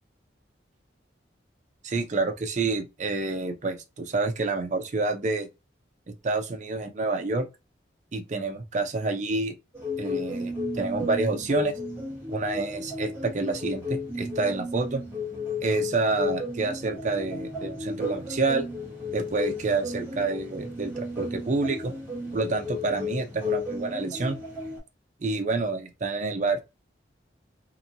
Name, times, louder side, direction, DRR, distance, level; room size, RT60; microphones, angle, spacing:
voice 1, 1.8-5.5 6.1-7.5 8.1-9.5 10.0-11.7 12.3-15.0 15.6-18.7 19.1-21.9 22.3-24.4 25.2-26.6, right 3 dB, 40° right, 0.4 m, -28 dB
sound 1, 9.7-24.8, left 3 dB, 10° right, 0.9 m, -33 dB
2.9 x 2.2 x 2.5 m
head